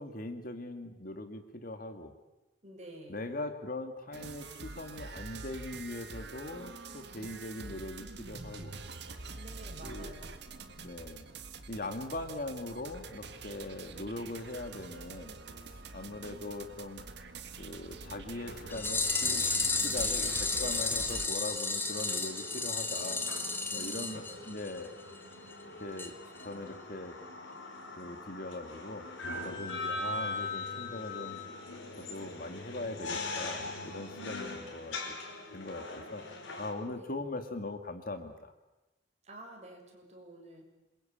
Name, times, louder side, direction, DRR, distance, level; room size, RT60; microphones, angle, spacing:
voice 1, 0.0-2.1 3.1-8.8 9.8-10.1 10.7-11.2 11.7-15.4 15.9-17.0 17.6-23.2 23.7-24.9 25.8-26.1 26.4-27.1 28.0-29.1 29.4-31.5 32.0-35.2 35.5-36.2 36.6-38.5, left 2 dB, 50° left, 8 dB, 2.1 m, -41 dB
voice 2, 2.6-3.2 9.4-10.3 23.7-24.6 36.8-37.2 39.2-40.6, right 1 dB, 35° right, 1 dB, 6.6 m, -50 dB
sound 1, 4.1-21.3, right 3 dB, 60° right, 1.9 m, -45 dB
sound 2, 18.4-36.7, left 3 dB, 90° left, 5.1 m, -42 dB
sound 3, 18.7-24.9 25.2-25.3 25.5-25.6 26.0-26.1 26.4-26.5, left 3 dB, 10° left, 2.3 m, -32 dB
27.5 x 23.0 x 8.8 m, 1.0 s
head